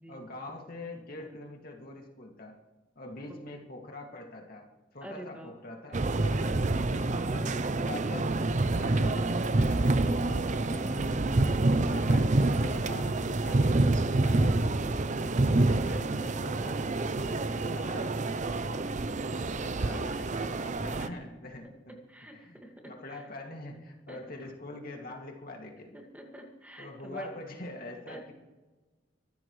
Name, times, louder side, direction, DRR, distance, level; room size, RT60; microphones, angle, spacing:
voice 1, 0.1-2.5 3.0-4.7 4.9-11.2 11.7-14.7 15.5-18.9 19.6-21.9 22.3-22.6 22.8-26.0 26.8-28.3, left 2 dB, 50° left, 1 dB, 2.4 m, -44 dB
voice 2, 5.0-5.5 19.9-20.2 22.1-22.7 23.1-23.2 24.1-24.2 25.9-27.3 28.1-28.2, right 1 dB, 10° right, 1 dB, 2.1 m, -45 dB
sound 1, 5.9-21.1, right 2 dB, 40° right, 0.6 m, -27 dB
24.5 x 13.5 x 3.3 m, 1.2 s
head